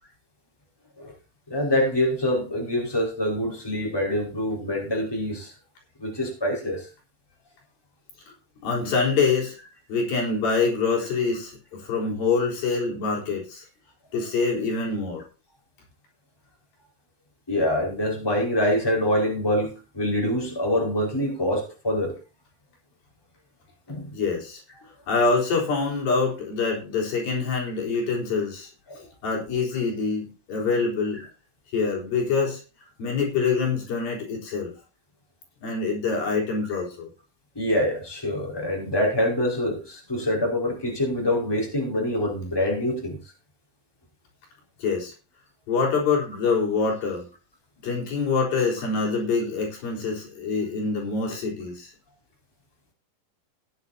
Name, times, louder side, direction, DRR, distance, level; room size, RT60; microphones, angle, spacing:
voice 1, 1.5-5.5 6.0-6.9 17.5-22.1 23.9-24.1 28.9-29.0 29.7-29.8 37.5-43.2, left 1 dB, 5° left, 0 dB, 4.9 m, -25 dB
voice 2, 8.6-9.6 9.9-13.6 14.1-15.2 24.1-24.6 25.1-31.2 31.7-32.6 33.0-34.7 35.6-37.1 44.8-45.1 45.7-47.2 47.8-51.9, left 4 dB, 70° left, -2 dB, 5.9 m, -25 dB
17.5 x 10.0 x 2.8 m, 0.32 s
omnidirectional pair, 4.4 m